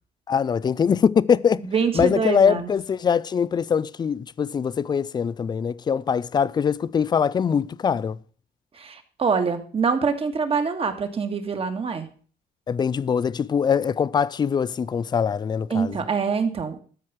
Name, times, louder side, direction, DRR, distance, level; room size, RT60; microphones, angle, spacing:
voice 1, 0.3-1.7 1.9-8.2 12.7-16.0, left 7 dB, 25° left, 0.4 m, -22 dB
voice 2, 1.6-2.7 8.7-12.1 15.7-16.8, right 5 dB, 35° right, 1.8 m, -25 dB
13.0 x 4.9 x 7.3 m
cardioid pair, 110°, 17 cm